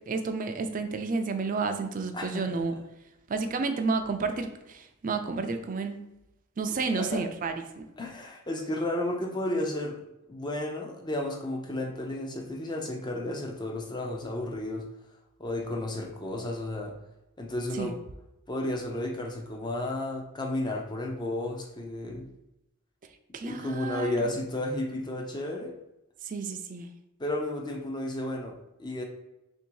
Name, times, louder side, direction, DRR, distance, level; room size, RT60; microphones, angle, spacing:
voice 1, 0.1-2.7 3.3-6.0 6.6-7.9 17.7-17.9 23.3-24.3 26.2-26.9, right 4 dB, 35° right, 6 dB, 0.4 m, -31 dB
voice 2, 2.1-2.8 7.0-7.2 8.0-10.0 10.3-14.8 15.4-16.9 17.4-17.9 18.5-22.3 23.4-25.8 27.2-29.0, left 1 dB, 20° left, 1 dB, 0.6 m, -33 dB
3.5 x 2.7 x 4.6 m, 0.91 s
head